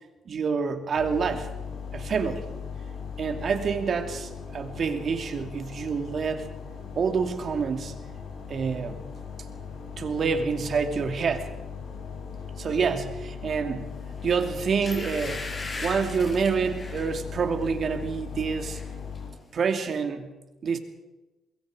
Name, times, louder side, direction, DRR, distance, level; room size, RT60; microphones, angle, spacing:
voice 1, 0.3-1.5 1.9-2.4 3.2-6.5 7.0-7.9 8.5-9.0 10.0-11.5 12.6-13.9 14.2-15.5 15.8-18.8 19.5-20.3 20.6-20.8, right 5 dB, 50° right, 6 dB, 2.7 m, -27 dB
sound 1, 0.9-19.3, left 6 dB, 75° left, 7.2 m, -38 dB
sound 2, 14.1-14.3 14.8-17.1 17.6-17.8 18.1-18.9 19.1-19.2, left 2 dB, 30° left, 5.8 m, -38 dB
25.5 x 21.5 x 5.1 m, 1.1 s
cardioid pair, 90°, 0 cm